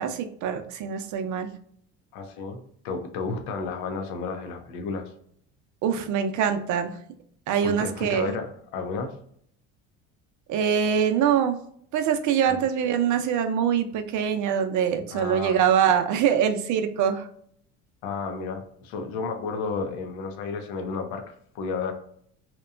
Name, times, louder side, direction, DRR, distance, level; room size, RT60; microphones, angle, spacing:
voice 1, 0.0-1.5 5.8-6.9 7.5-8.3 10.5-11.6 11.9-17.3, right 8 dB, 55° right, 7 dB, 0.6 m, -24 dB
voice 2, 2.1-2.6 2.8-5.1 7.6-9.1 12.5-12.6 15.1-15.6 18.0-21.9, left 4 dB, 75° left, 5 dB, 0.6 m, -32 dB
2.8 x 2.2 x 2.4 m, 0.65 s
supercardioid pair, 85°, 35 cm